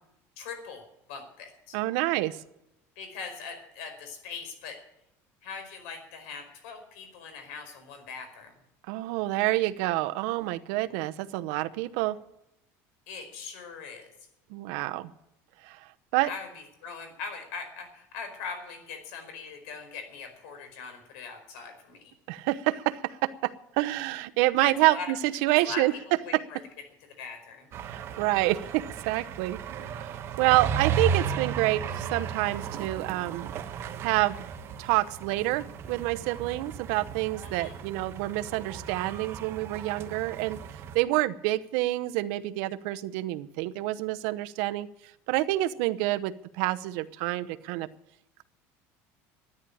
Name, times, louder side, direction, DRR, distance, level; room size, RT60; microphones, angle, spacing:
voice 1, 0.4-1.8 2.9-4.8 5.4-8.5 13.1-14.1 16.3-22.0 24.6-25.1 25.6-26.0 26.2-26.6 27.2-27.7 37.4-37.8, left 5 dB, 90° left, 7 dB, 4.9 m, -41 dB
voice 2, 1.7-2.4 8.9-12.2 14.5-15.1 15.6-15.8 16.1-16.3 22.3-25.9 27.8-29.6 29.9-33.5 34.0-34.4 34.8-40.6 40.9-44.9 45.3-47.9, right 17 dB, 75° right, 11 dB, 0.8 m, -28 dB
sound 1, 27.7-41.0, right 6 dB, 40° right, 1.2 m, -35 dB
13.0 x 10.0 x 8.6 m, 0.84 s
cardioid pair, 155°, 7 cm